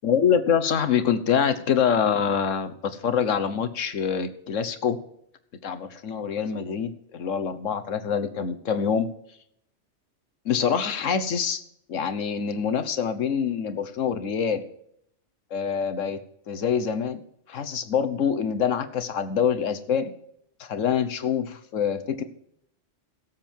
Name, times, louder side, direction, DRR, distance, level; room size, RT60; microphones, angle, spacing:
voice 1, 0.0-5.0 5.6-9.1 10.4-11.6 11.9-14.6 15.5-16.2 16.5-17.2 17.5-20.1 20.6-22.2, left 7 dB, 85° left, 10 dB, 1.4 m, -25 dB
17.0 x 7.6 x 4.5 m, 0.71 s
omnidirectional pair, 1.3 m